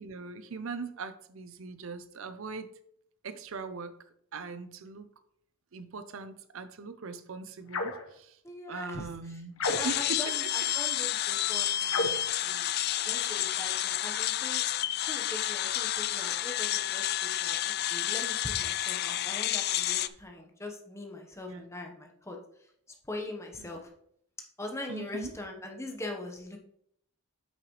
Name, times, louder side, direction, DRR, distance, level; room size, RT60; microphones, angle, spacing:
voice 1, 0.0-2.7 3.2-4.0 4.3-5.1 5.7-8.4 8.7-10.4 12.9-13.2 21.5-21.7 23.6-23.7 24.9-25.3, right 4 dB, 65° right, 12 dB, 0.5 m, -40 dB
sound 1, 7.7-8.1 9.6-10.1 11.9-12.3, left 3 dB, 70° left, 1.1 m, -32 dB
voice 2, 8.4-9.4 9.8-12.7 13.0-14.6 15.1-22.7 23.0-23.9 24.6-26.6, left 2 dB, 15° left, 2 dB, 1.0 m, -42 dB
sound 2, 9.6-20.1, left 13 dB, 45° left, 0.3 m, -30 dB
8.8 x 5.9 x 3.1 m, 0.70 s
head